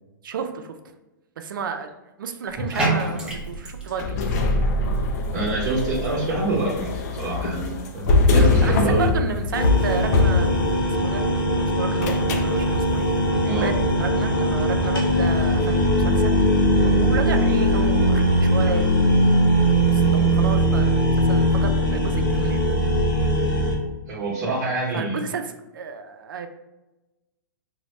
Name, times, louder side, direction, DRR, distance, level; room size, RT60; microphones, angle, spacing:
voice 1, 0.2-0.7 1.4-1.9 2.2-4.4 8.6-10.5 11.0-11.2 11.6-13.1 13.6-13.7 14.0-16.4 16.8-18.9 19.9-22.6 24.9-26.5, right 5 dB, 80° right, 7 dB, 0.4 m, -32 dB
Bathtub (filling or washing), 2.5-20.8, right 2 dB, 10° right, 0.8 m, -37 dB
sound 1, 4.0-11.1 12.0-12.5, left 3 dB, 55° left, 0.5 m, -22 dB
voice 2, 5.3-6.9 7.2-9.1 13.4-13.7 24.1-25.2, right 2 dB, 55° right, -5 dB, 1.0 m, -25 dB
sound 2, 9.5-23.8, equal, 80° left, 1.1 m, -20 dB
3.9 x 2.1 x 3.0 m, 1.0 s
hypercardioid pair, 130°, 11 cm